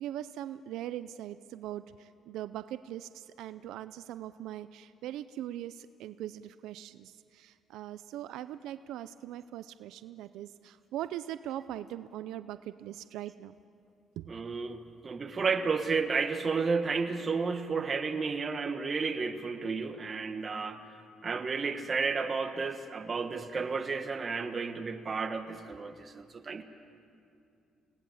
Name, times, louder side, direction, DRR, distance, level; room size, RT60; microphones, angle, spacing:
voice 1, 0.0-13.5 14.2-14.3, right 12 dB, 85° right, 13 dB, 0.5 m, -41 dB
voice 2, 14.3-20.8 21.2-26.6, right 4 dB, 30° right, 7 dB, 1.4 m, -32 dB
29.5 x 18.5 x 7.2 m, 2.5 s
cardioid pair, 130°, 0 cm